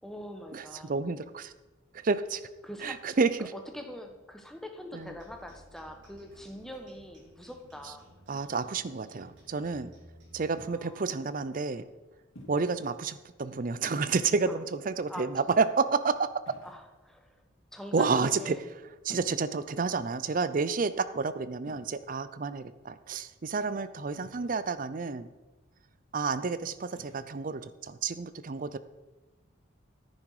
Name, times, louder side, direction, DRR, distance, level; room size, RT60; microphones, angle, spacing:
voice 1, 0.0-0.9 2.6-3.1 3.4-8.0 10.7-11.1 14.5-14.6 15.1-15.3 16.6-17.4 17.7-18.6, equal, ahead, 4 dB, 1.1 m, -43 dB
voice 2, 0.5-1.5 1.9-2.4 2.8-3.5 4.9-5.1 8.3-9.9 10.3-11.8 12.5-16.3 17.9-18.8 19.0-25.3 26.1-28.8, right 4 dB, 45° right, 14 dB, 0.5 m, -30 dB
sound 1, 5.0-10.6, right 1 dB, 60° right, 4.6 m, -56 dB
sound 2, 10.6-11.0 12.3-12.8 14.2-14.8 16.4-17.2 19.0-19.6 21.6-21.9 24.2-24.7 26.9-27.3, left 1 dB, 90° left, 3.0 m, -52 dB
10.5 x 9.7 x 4.8 m, 1.1 s
head